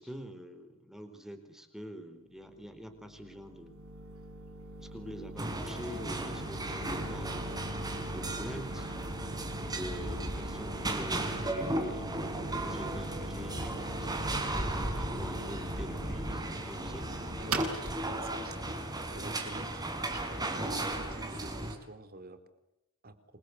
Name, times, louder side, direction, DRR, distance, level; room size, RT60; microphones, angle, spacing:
voice 1, 0.0-3.8 4.8-7.6 8.1-8.9 9.7-14.4 14.9-17.1, equal, ahead, 8 dB, 4.1 m, -45 dB
sound 1, 2.4-20.0, right 2 dB, 65° right, 7.4 m, -43 dB
sound 2, 5.4-21.7, right 1 dB, 20° right, 4.5 m, -35 dB
voice 2, 14.8-15.4 17.4-17.7 18.2-18.8 19.1-19.7 20.1-22.4 23.0-23.2, right 2 dB, 45° right, 9 dB, 3.9 m, -48 dB
28.5 x 24.5 x 8.2 m, 0.92 s
head